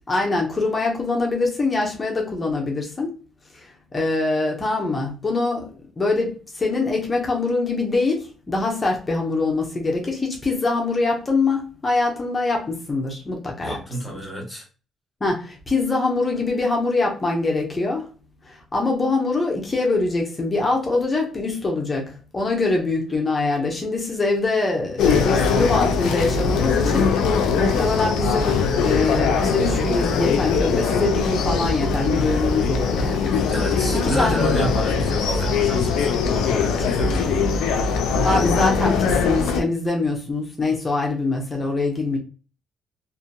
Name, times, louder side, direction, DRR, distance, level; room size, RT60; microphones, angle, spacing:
voice 1, 0.1-3.1 3.5-5.7 6.0-13.8 15.2-18.1 18.5-33.4 33.9-34.4 38.2-42.2, left 3 dB, 30° left, 0.9 m, -23 dB
voice 2, 13.6-14.7 33.5-37.5, equal, 5° left, 1.3 m, -29 dB
sound 1, 25.0-39.6, left 5 dB, 90° left, 0.4 m, -21 dB
2.7 x 2.6 x 2.3 m
cardioid pair, 90°, 0 cm